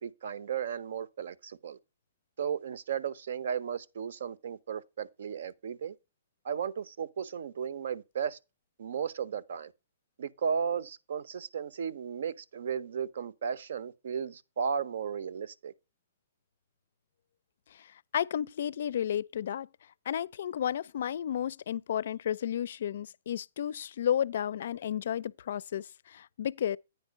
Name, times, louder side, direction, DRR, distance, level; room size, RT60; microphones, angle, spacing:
voice 1, 0.0-1.8 2.4-5.9 6.4-8.4 8.8-9.7 10.2-15.7, right 7 dB, 70° right, 0.8 m, -35 dB
voice 2, 18.1-19.7 20.1-26.8, left 10 dB, 65° left, 0.4 m, -32 dB
9.4 x 4.4 x 5.2 m
hypercardioid pair, 135°, 0 cm